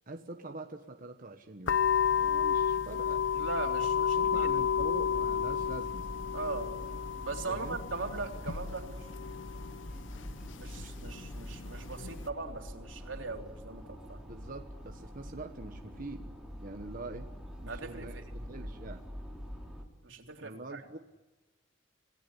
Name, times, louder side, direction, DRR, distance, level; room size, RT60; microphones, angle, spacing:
voice 1, 0.1-1.8 2.2-3.3 4.1-6.1 7.5-7.8 10.8-11.1 14.2-16.3 16.6-17.3 17.6-19.0 20.4-21.0, right 2 dB, 45° right, 5 dB, 1.3 m, -44 dB
sound 1, 1.7-12.3, left 7 dB, 75° left, 0.8 m, -32 dB
voice 2, 3.4-4.8 6.3-6.7 7.2-9.1 10.6-14.2 17.7-18.2 20.0-20.8, right 3 dB, 85° right, 3 dB, 3.5 m, -40 dB
sound 2, 4.2-19.8, equal, 5° right, 3.2 m, -46 dB
27.5 x 17.5 x 10.0 m, 1.1 s
head